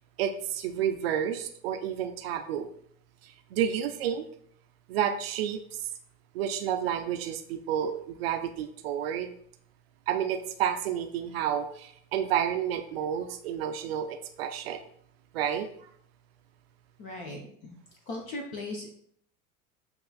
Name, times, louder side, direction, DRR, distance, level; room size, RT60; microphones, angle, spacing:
voice 1, 0.2-2.7 3.2-4.2 4.9-5.8 6.3-9.3 10.1-14.8 15.3-15.9, right 9 dB, 40° right, 7 dB, 0.5 m, -30 dB
voice 2, 17.0-17.7 18.1-18.9, left 2 dB, 20° left, 1 dB, 0.3 m, -38 dB
7.4 x 2.9 x 2.3 m, 0.65 s
figure-of-eight pair, 85°, 46 cm